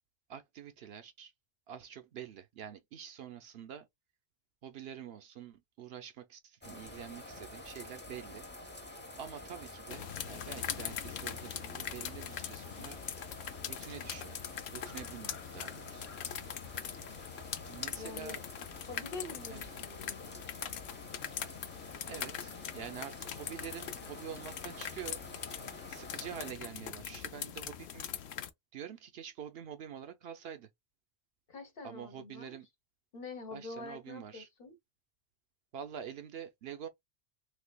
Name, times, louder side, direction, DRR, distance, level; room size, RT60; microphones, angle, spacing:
voice 1, 0.3-1.3 1.7-3.9 4.6-8.5 9.2-13.0 13.6-14.4 14.7-16.1 17.7-18.5 19.5-19.7 22.1-25.2 25.9-28.1 28.7-30.7 31.8-32.7 33.5-34.5 35.7-36.9, right 8 dB, 70° right, 0.8 m, -46 dB
sound 1, 6.6-26.5, left 1 dB, 10° left, 0.6 m, -49 dB
sound 2, 9.9-28.5, left 9 dB, 70° left, 0.8 m, -42 dB
voice 2, 18.0-18.4 18.9-20.3 31.5-32.6 33.1-34.8, left 3 dB, 55° left, 1.1 m, -46 dB
3.3 x 3.2 x 2.2 m
omnidirectional pair, 1.1 m